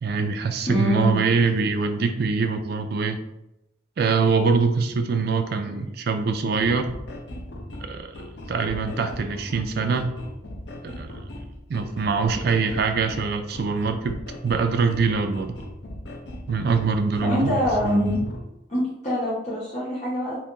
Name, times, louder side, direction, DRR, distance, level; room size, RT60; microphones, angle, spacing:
voice 1, 0.0-3.2 4.0-6.9 7.8-8.1 8.5-10.1 10.8-11.2 11.7-14.2 14.4-15.6 16.5-18.2, right 4 dB, 50° right, 6 dB, 0.3 m, -24 dB
voice 2, 0.7-1.2 5.6-5.9 17.2-18.2 18.7-20.4, left 1 dB, 35° left, -9 dB, 0.9 m, -25 dB
sound 1, 6.6-18.4, left 1 dB, 60° left, 0.5 m, -39 dB
2.6 x 2.5 x 3.6 m, 0.89 s
head